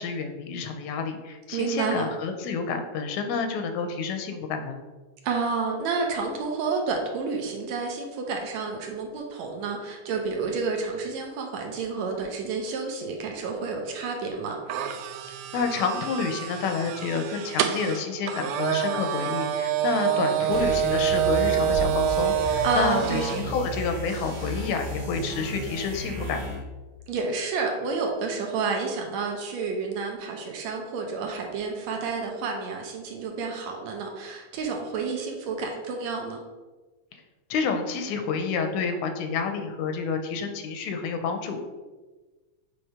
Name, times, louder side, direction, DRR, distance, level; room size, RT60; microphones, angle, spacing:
voice 1, 0.0-4.8 15.5-26.6 37.5-41.6, left 5 dB, 80° left, 6 dB, 2.0 m, -29 dB
voice 2, 1.5-2.1 5.2-14.6 22.6-23.3 27.1-36.4, right 4 dB, 75° right, 2 dB, 1.9 m, -30 dB
sound 1, 14.7-23.4, right 9 dB, 90° right, 2.1 m, -27 dB
sound 2, 20.5-26.7, right 1 dB, 40° right, 1.8 m, -34 dB
7.3 x 3.3 x 4.8 m, 1.3 s
omnidirectional pair, 3.5 m